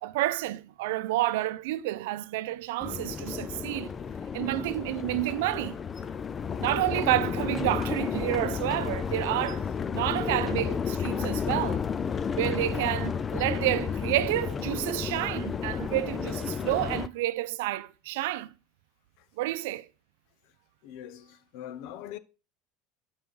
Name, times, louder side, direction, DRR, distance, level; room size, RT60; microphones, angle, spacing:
voice 1, 0.0-3.9 4.3-5.8 6.6-9.6 9.9-11.8 12.4-18.5 19.4-19.9, right 16 dB, 80° right, 0.6 m, -29 dB
sound 1, 2.8-17.1, left 6 dB, 20° left, 0.4 m, -32 dB
voice 2, 20.8-22.2, left 11 dB, 60° left, 0.7 m, -42 dB
9.5 x 5.7 x 4.8 m
cardioid pair, 160°, 0 cm